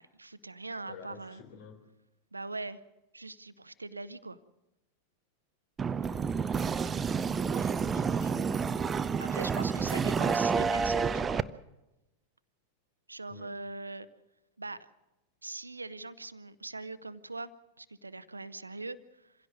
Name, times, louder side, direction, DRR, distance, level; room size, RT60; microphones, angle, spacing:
voice 1, 0.0-1.4 2.3-2.8 3.1-4.4 9.2-11.5 13.1-14.1 14.6-14.9 15.4-17.5 17.8-19.3, right 3 dB, 80° right, 15 dB, 0.8 m, -41 dB
voice 2, 0.9-1.7 6.0-6.2 7.4-9.7 10.0-10.3 13.3-13.5, left 6 dB, 50° left, 7 dB, 3.6 m, -51 dB
sound 1, 5.8-11.4, right 5 dB, 20° right, 0.6 m, -29 dB
26.0 x 16.5 x 6.5 m, 0.99 s
figure-of-eight pair, 90°, 0 cm